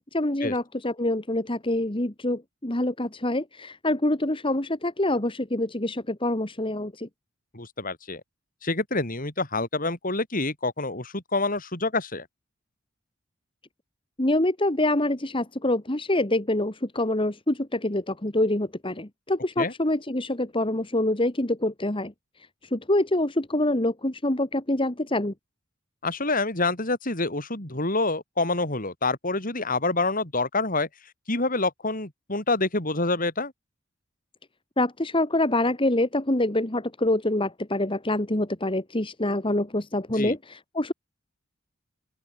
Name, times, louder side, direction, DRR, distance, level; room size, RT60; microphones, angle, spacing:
voice 1, 0.0-7.1 14.2-22.1 22.7-25.3 34.8-40.9, left 1 dB, 25° left, 2.0 m, -26 dB
voice 2, 7.5-8.2 8.6-12.3 19.6-19.7 26.0-30.9 31.3-33.5 40.1-40.3, left 3 dB, 45° left, 5.5 m, -27 dB
open air
head